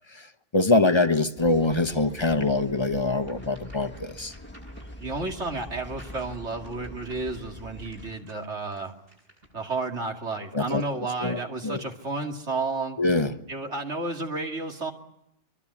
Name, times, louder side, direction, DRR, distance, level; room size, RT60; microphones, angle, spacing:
voice 1, 0.1-4.3 10.5-10.8 11.2-11.8 13.0-13.3, left 2 dB, 25° left, 9 dB, 1.0 m, -24 dB
sound 1, 1.4-8.1, left 1 dB, 10° left, 1.5 m, -44 dB
sound 2, 3.2-9.7, right 1 dB, 50° right, 8.5 m, -55 dB
voice 2, 5.0-8.9 9.5-13.0 13.5-14.9, right 3 dB, 70° right, 2 dB, 2.8 m, -32 dB
24.0 x 23.5 x 8.5 m, 0.78 s
omnidirectional pair, 1.2 m